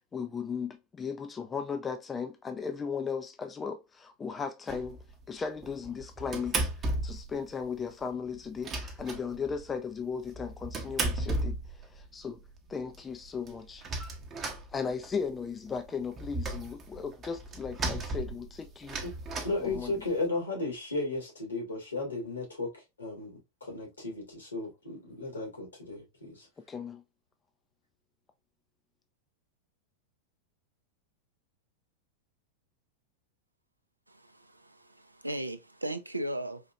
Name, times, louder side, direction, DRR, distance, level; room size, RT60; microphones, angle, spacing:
voice 1, 0.1-5.0 5.3-11.6 11.8-12.4 12.7-13.9 14.7-19.0 19.6-19.9 26.7-27.0, left 6 dB, 20° left, 0.4 m, -36 dB
sound 1, 4.7-5.1 5.6-7.4 7.6-7.7 8.0-8.1 8.4-9.7 10.2-12.1 12.6-12.7 12.9-13.0 13.2-15.3 15.7-20.2, right 2 dB, 25° right, 0.8 m, -35 dB
voice 2, 19.4-22.7 23.0-26.5, left 2 dB, 80° left, 1.9 m, -35 dB
voice 3, 34.1-36.6, right 1 dB, 85° right, 0.4 m, -37 dB
4.2 x 2.8 x 2.3 m
figure-of-eight pair, 90°, 0 cm